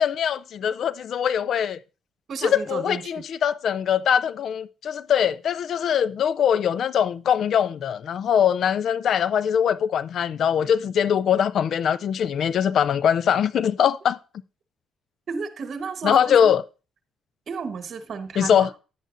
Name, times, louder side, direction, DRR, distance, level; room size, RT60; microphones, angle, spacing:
voice 1, 0.0-1.8 2.4-14.2 16.0-16.6 18.4-18.7, left 8 dB, 65° left, 0.4 m, -22 dB
voice 2, 2.3-3.2 15.3-16.5 17.5-18.7, right 5 dB, 55° right, 1.1 m, -33 dB
10.5 x 9.2 x 2.5 m
cardioid pair, 90°, 0 cm